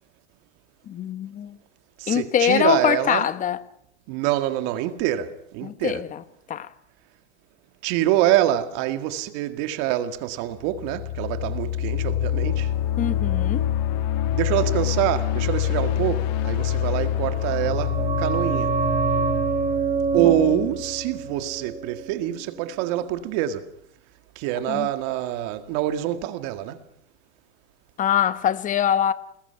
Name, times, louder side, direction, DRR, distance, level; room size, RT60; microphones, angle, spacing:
voice 1, 0.9-1.6 2.1-3.6 5.6-6.2 6.5-6.7 13.0-13.6 20.2-20.6 24.7-24.9 28.0-29.1, left 9 dB, 25° left, 1.0 m, -23 dB
voice 2, 2.0-3.3 4.1-6.0 7.8-12.7 14.3-18.7 20.1-23.7 24.4-26.8, right 13 dB, 50° right, 2.0 m, -25 dB
sound 1, 10.6-21.4, left 11 dB, 50° left, 1.8 m, -26 dB
sound 2, 17.3-22.7 22.9-23.0, right 6 dB, 20° right, 2.9 m, -27 dB
29.0 x 20.5 x 5.8 m
supercardioid pair, 135°, 34 cm